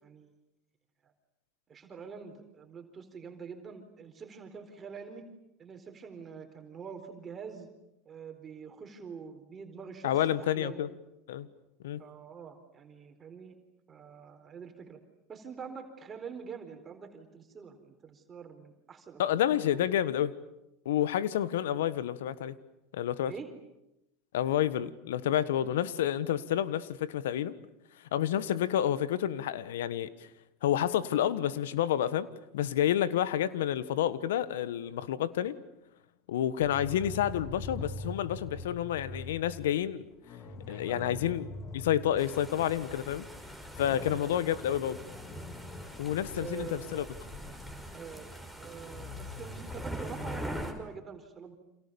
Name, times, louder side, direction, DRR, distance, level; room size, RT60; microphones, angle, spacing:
voice 1, 1.7-5.2 5.6-7.7 8.1-10.9 12.0-13.6 13.9-15.0 15.3-19.8 23.3-23.5 40.7-41.2 43.8-44.3 46.3-47.1 47.9-51.6, right 6 dB, 30° right, 5 dB, 4.3 m, -45 dB
voice 2, 10.0-10.9 11.3-11.5 11.8-12.0 19.2-20.3 20.8-22.6 22.9-23.3 24.3-27.6 28.1-30.1 30.6-32.3 32.5-35.6 36.3-40.0 40.7-41.5 41.7-43.3 43.8-45.0 46.0-47.0, left 11 dB, 80° left, 15 dB, 1.4 m, -29 dB
sound 1, 36.6-43.0 43.4-43.5 43.7-48.4 48.9-50.5, left 2 dB, 40° left, 3.5 m, -44 dB
sound 2, 42.2-50.7, equal, 10° left, 5.8 m, -43 dB
29.0 x 27.0 x 7.1 m, 0.89 s
hypercardioid pair, 85°, 0 cm